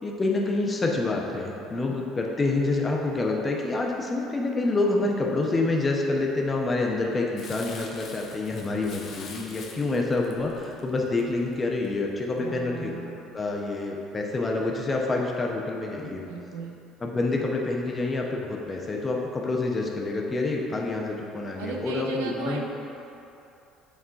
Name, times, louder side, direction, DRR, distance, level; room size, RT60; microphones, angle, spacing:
voice 1, 0.0-12.9 13.3-16.2 17.0-22.6, left 2 dB, 25° left, -1 dB, 1.0 m, -27 dB
Crumpling crinkling, 7.4-11.9 12.4-12.5, left 4 dB, 50° left, 0.7 m, -44 dB
voice 2, 12.4-13.3 16.3-16.8 21.6-22.6, right 5 dB, 75° right, 1 dB, 0.6 m, -36 dB
8.2 x 3.6 x 3.7 m, 2.9 s
figure-of-eight pair, 60°, 0 cm